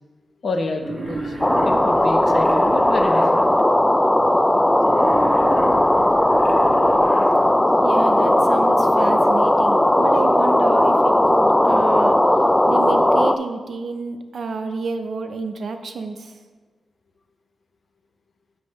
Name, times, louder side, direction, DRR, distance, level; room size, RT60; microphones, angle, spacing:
voice 1, 0.4-3.6, left 3 dB, 55° left, 5 dB, 0.8 m, -29 dB
Wild animals, 0.8-3.3 4.8-7.3, right 2 dB, 20° right, 1.2 m, -31 dB
sound 1, 1.4-13.4, left 1 dB, 10° left, 0.3 m, -17 dB
voice 2, 7.8-12.2 12.7-16.3, right 4 dB, 65° right, 6 dB, 0.6 m, -29 dB
7.6 x 6.3 x 3.1 m, 1.3 s
cardioid pair, 75°, 0 cm